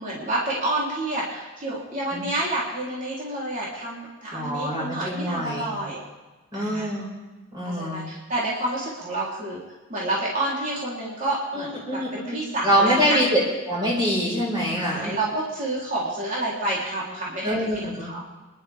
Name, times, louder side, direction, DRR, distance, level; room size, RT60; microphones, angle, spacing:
voice 1, 0.0-6.0 6.5-7.0 7.6-9.6 9.9-13.2 14.7-18.2, right 1 dB, 35° right, -6 dB, 3.9 m, -29 dB
voice 2, 4.3-5.7 6.5-7.1 7.5-8.1 11.5-12.4 12.6-13.4 13.7-15.1 17.4-18.1, equal, 20° right, -5 dB, 5.5 m, -24 dB
28.0 x 11.5 x 3.7 m, 1.2 s
head